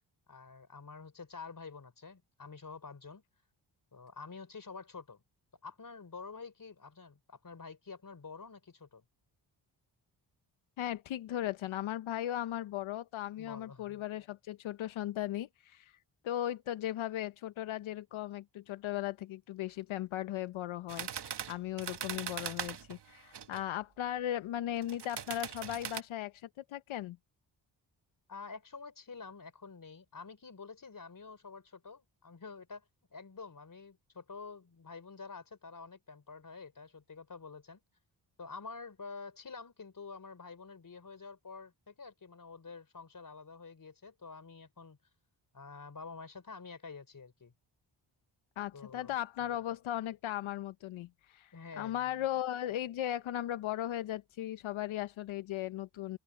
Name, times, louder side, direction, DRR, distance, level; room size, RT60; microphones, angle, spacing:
voice 1, 0.3-3.2 3.9-5.2 5.6-9.0 13.4-14.0 28.3-37.8 38.4-45.0 45.5-47.5 48.7-49.1 51.5-52.2, left 4 dB, 45° left, 4.2 m, -48 dB
voice 2, 10.8-16.0 16.2-27.2 48.6-56.2, left 12 dB, 80° left, 0.8 m, -37 dB
sound 1, 20.9-23.6 24.8-26.0, right 8 dB, 60° right, 1.5 m, -40 dB
open air
cardioid pair, 55°, 47 cm